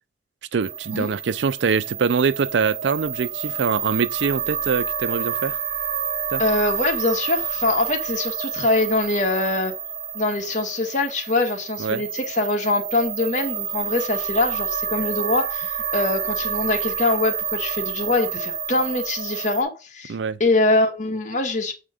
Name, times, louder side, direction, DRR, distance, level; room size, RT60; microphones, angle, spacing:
voice 1, 0.5-5.6 6.3-6.4 11.8-12.0 20.1-20.4, right 5 dB, 85° right, 0.4 m, -23 dB
sound 1, 0.6-19.6, right 8 dB, 50° right, 1.0 m, -29 dB
voice 2, 6.4-9.7 10.1-20.1 20.4-21.7, left 2 dB, 45° left, 1.6 m, -23 dB
7.8 x 3.7 x 5.0 m
head